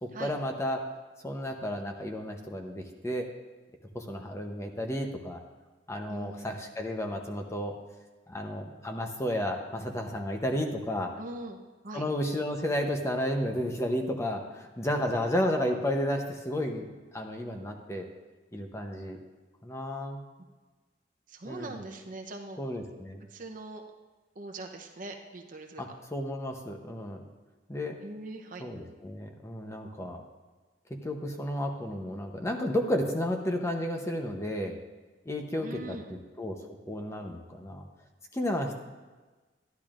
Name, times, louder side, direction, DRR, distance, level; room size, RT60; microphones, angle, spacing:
voice 1, 0.0-0.8 1.2-3.3 3.9-5.4 5.9-7.8 8.3-11.1 11.9-18.1 18.5-19.2 19.6-20.2 21.4-21.7 22.6-23.2 25.8-27.2 27.7-28.0 28.6-30.2 31.0-34.8 35.3-36.0 36.4-36.6 36.9-37.9 38.3-38.8, left 1 dB, 15° left, 3 dB, 0.7 m, -32 dB
voice 2, 6.1-6.6 11.2-11.6 11.8-12.0 15.0-15.3 21.3-22.6 23.3-23.8 24.3-26.0 28.0-28.6 35.6-36.1, right 2 dB, 45° right, 3 dB, 0.8 m, -42 dB
12.0 x 10.5 x 2.5 m, 1.3 s
head